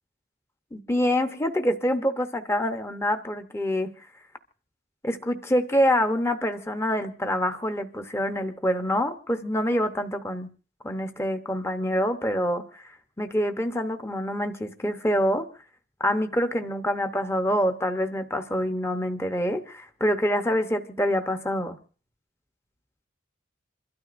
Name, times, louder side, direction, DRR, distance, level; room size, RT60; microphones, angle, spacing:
voice 1, 0.7-3.9 5.0-10.5 10.8-12.9 13.2-15.4 16.0-21.8, equal, 15° left, 6 dB, 0.8 m, -26 dB
27.5 x 12.5 x 2.5 m, 0.39 s
head